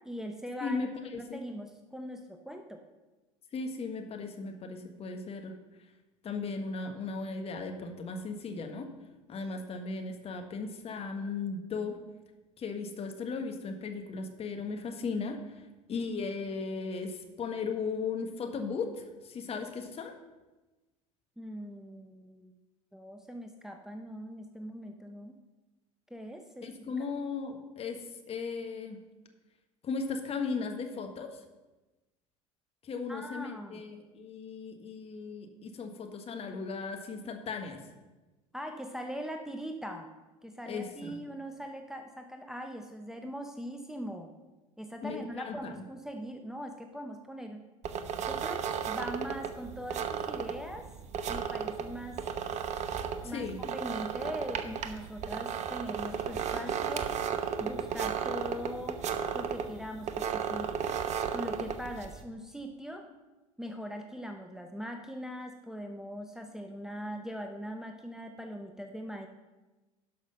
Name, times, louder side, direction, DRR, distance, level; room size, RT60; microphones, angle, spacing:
voice 1, 0.0-0.8 1.1-2.8 21.4-22.5 22.9-25.4 26.1-26.7 33.1-33.8 38.5-40.1 40.4-44.3 44.8-47.6 48.2-50.8 51.3-52.2 53.2-57.1 57.6-59.0 59.3-60.7 61.3-63.1 63.6-69.3, equal, 5° right, 4 dB, 1.0 m, -41 dB
voice 2, 0.6-1.4 3.5-5.5 6.2-8.9 9.3-12.0 12.6-20.1 26.6-29.0 29.8-31.4 32.8-37.8 40.7-41.2 45.0-45.8 53.2-53.6, left 4 dB, 35° left, 5 dB, 1.5 m, -37 dB
sound 1, 47.8-62.2, right 7 dB, 40° right, 1.0 m, -34 dB
11.5 x 6.1 x 5.6 m, 1.1 s
hypercardioid pair, 70°, 17 cm